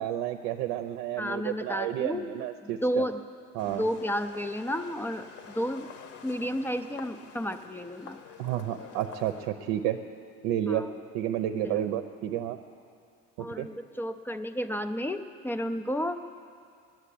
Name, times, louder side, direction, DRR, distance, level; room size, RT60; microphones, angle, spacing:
voice 1, 0.0-3.0 3.5-3.9 8.4-10.0 10.4-10.8 11.1-12.6 13.4-13.7, right 11 dB, 85° right, 7 dB, 0.7 m, -31 dB
voice 2, 1.2-3.2 3.7-5.9 6.2-8.2 10.7-10.9 11.6-11.8 13.4-16.2, equal, 5° left, 9 dB, 0.3 m, -32 dB
sound 1, 3.6-9.5, left 7 dB, 55° left, 0.9 m, -48 dB
9.3 x 9.2 x 9.9 m, 2.3 s
cardioid pair, 140°, 30 cm